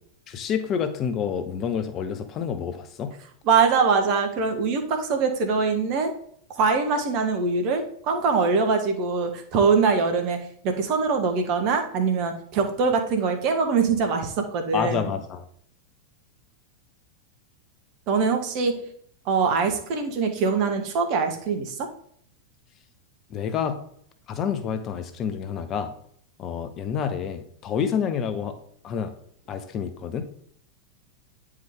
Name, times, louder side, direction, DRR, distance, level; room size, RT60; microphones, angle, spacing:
voice 1, 0.3-3.1 14.7-15.5 23.3-23.8 24.3-25.9 26.4-28.5 28.8-29.1 29.5-30.3, left 7 dB, 30° left, 8 dB, 0.8 m, -28 dB
voice 2, 3.4-6.1 6.5-10.4 10.6-15.1 18.1-18.8 19.2-21.8, right 5 dB, 40° right, 5 dB, 1.3 m, -23 dB
9.3 x 4.7 x 3.7 m, 0.64 s
figure-of-eight pair, 90°, 0 cm